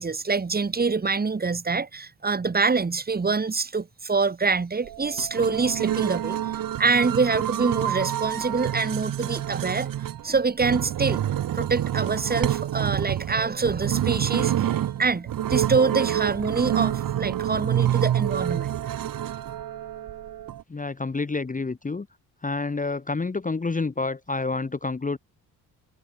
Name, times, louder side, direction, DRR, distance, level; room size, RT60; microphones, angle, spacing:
voice 1, 0.0-6.4 6.8-9.9 10.2-11.2 11.5-14.7 15.0-18.7, right 4 dB, 20° right, 1.7 m, -25 dB
sound 1, 4.8-20.6, right 11 dB, 40° right, 1.3 m, -27 dB
voice 2, 20.7-22.1 22.4-25.2, left 3 dB, 15° left, 1.4 m, -28 dB
figure-of-eight pair, 45°, 50 cm